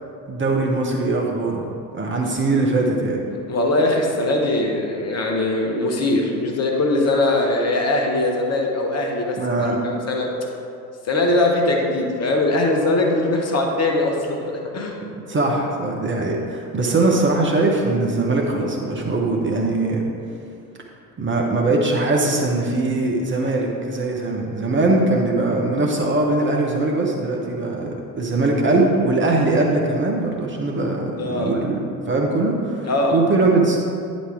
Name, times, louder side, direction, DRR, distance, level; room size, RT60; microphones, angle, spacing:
voice 1, 0.3-3.2 9.4-9.8 15.3-20.0 21.2-33.8, right 2 dB, 25° right, 0 dB, 1.0 m, -21 dB
voice 2, 3.5-10.3 11.0-15.0 31.2-31.5 32.8-33.2, left 2 dB, 30° left, 1 dB, 1.2 m, -21 dB
9.7 x 4.1 x 4.8 m, 2.5 s
figure-of-eight pair, 65°, 48 cm